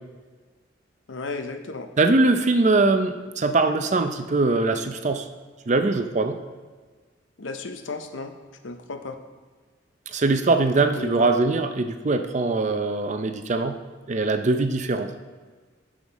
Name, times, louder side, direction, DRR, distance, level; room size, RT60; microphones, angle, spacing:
voice 1, 1.1-1.9 7.4-8.3 8.6-9.2 10.9-11.3, left 3 dB, 90° left, 7 dB, 0.7 m, -34 dB
voice 2, 2.0-5.3 5.7-6.4 10.1-13.8 14.1-15.1, right 3 dB, 40° right, 8 dB, 0.5 m, -22 dB
8.7 x 6.4 x 4.1 m, 1.4 s
head